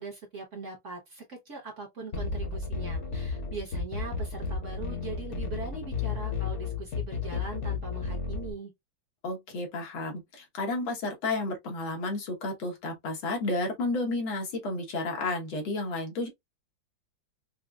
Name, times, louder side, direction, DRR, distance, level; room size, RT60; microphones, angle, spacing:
voice 1, 0.0-8.7, right 4 dB, 50° right, 1.1 m, -41 dB
sound 1, 2.1-8.5, left 5 dB, 50° left, 0.9 m, -33 dB
voice 2, 9.2-16.3, left 2 dB, 90° left, 2.0 m, -32 dB
5.1 x 2.0 x 2.3 m
omnidirectional pair, 2.1 m